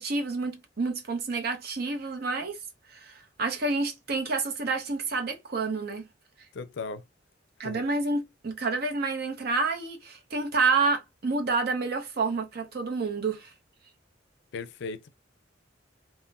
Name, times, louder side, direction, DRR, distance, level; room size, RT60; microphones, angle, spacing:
voice 1, 0.0-2.6 2.9-6.0 7.6-13.5, right 3 dB, 55° right, 0.7 m, -29 dB
voice 2, 6.6-7.0 7.6-7.8 14.5-15.1, left 4 dB, 65° left, 0.4 m, -36 dB
3.6 x 2.1 x 2.2 m
head